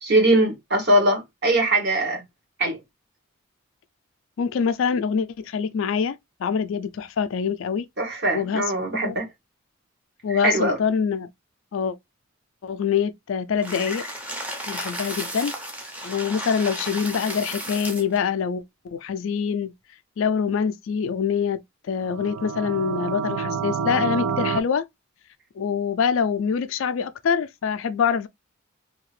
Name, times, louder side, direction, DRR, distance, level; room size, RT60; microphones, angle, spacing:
voice 1, 0.0-2.2 2.6-2.8 8.0-9.3 10.3-10.8, right 1 dB, 50° right, 1.1 m, -21 dB
voice 2, 4.4-7.9 8.3-8.6 9.0-9.2 10.2-11.3 11.7-12.0 12.6-14.1 14.7-15.5 16.0-19.7 20.2-21.6 21.9-24.8 25.6-28.3, left 6 dB, 65° left, 0.3 m, -25 dB
sound 1, 13.6-18.2, equal, 5° right, 0.6 m, -33 dB
sound 2, 22.0-24.6, right 6 dB, 75° right, 0.4 m, -28 dB
2.7 x 2.4 x 3.0 m
head